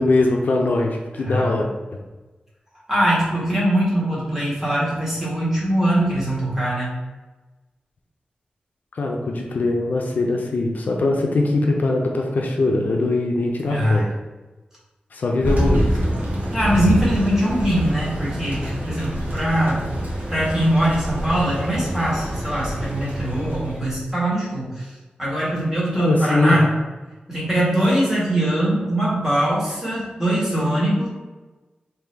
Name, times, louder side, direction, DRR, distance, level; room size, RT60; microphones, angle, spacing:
voice 1, 0.0-2.0 9.0-14.1 15.1-15.9 25.9-26.6, left 2 dB, 70° left, 1 dB, 0.5 m, -21 dB
voice 2, 2.9-6.9 13.6-14.0 16.5-19.8 20.3-24.9 25.2-26.7 27.3-31.1, right 1 dB, 10° right, -7 dB, 1.4 m, -22 dB
Thunder, 15.4-23.9, equal, 65° right, 1.0 m, -26 dB
3.7 x 2.7 x 3.3 m, 1.2 s
wide cardioid pair, 125°, 3 cm